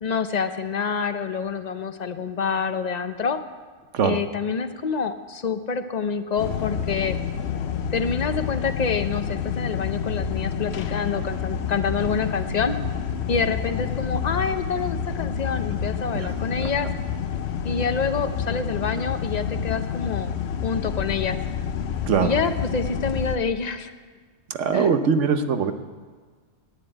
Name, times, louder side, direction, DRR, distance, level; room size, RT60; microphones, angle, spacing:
voice 1, 0.0-3.4 4.0-7.2 7.9-12.8 13.3-16.9 17.6-20.3 20.6-21.4 22.2-23.9 24.7-24.9, left 5 dB, 40° left, 10 dB, 0.7 m, -27 dB
sound 1, 6.4-23.4, left 7 dB, 65° left, 0.9 m, -28 dB
voice 2, 24.6-25.7, right 6 dB, 85° right, 9 dB, 1.2 m, -21 dB
11.5 x 9.8 x 8.9 m, 1.5 s
omnidirectional pair, 1.2 m